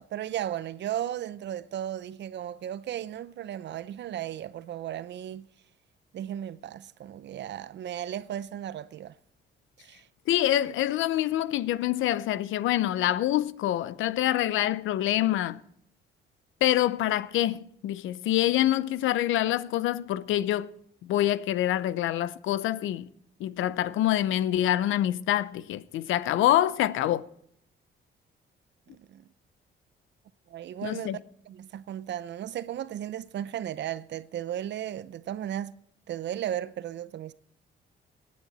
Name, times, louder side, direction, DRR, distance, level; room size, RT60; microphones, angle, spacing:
voice 1, 0.0-5.5 6.1-9.1 9.8-10.1 28.9-29.2 30.5-31.2 31.5-35.7 36.1-37.3, right 11 dB, 65° right, 0.7 m, -35 dB
voice 2, 10.3-15.6 16.6-20.7 21.0-23.1 23.4-27.2 30.8-31.2, left 13 dB, 85° left, 0.6 m, -26 dB
18.0 x 9.6 x 4.1 m
cardioid pair, 90°, 20 cm